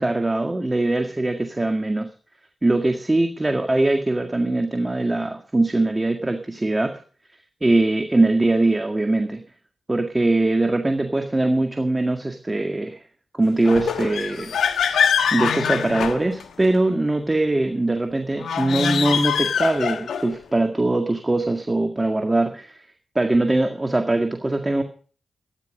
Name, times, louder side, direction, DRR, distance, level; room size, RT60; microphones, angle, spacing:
voice 1, 0.0-2.1 2.6-7.0 7.6-9.4 9.9-13.0 13.3-14.5 15.3-22.8 23.2-24.8, right 2 dB, 25° right, 5 dB, 2.0 m, -21 dB
sound 1, 13.6-16.8 18.4-20.4, left 7 dB, 80° left, 1.4 m, -23 dB
14.0 x 10.5 x 6.5 m, 0.41 s
supercardioid pair, 40°, 0 cm